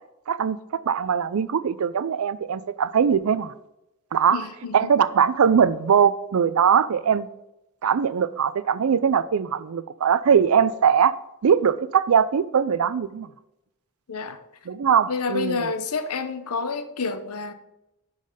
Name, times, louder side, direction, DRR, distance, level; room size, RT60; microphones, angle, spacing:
voice 1, 0.3-0.6 0.8-3.5 4.1-4.4 4.7-7.3 7.8-11.1 11.4-13.3 14.7-15.7, right 7 dB, 70° right, 16 dB, 0.4 m, -21 dB
voice 2, 4.3-4.9 14.1-14.4 15.1-17.5, left 4 dB, 80° left, 10 dB, 0.8 m, -29 dB
10.5 x 4.0 x 5.0 m, 0.88 s
head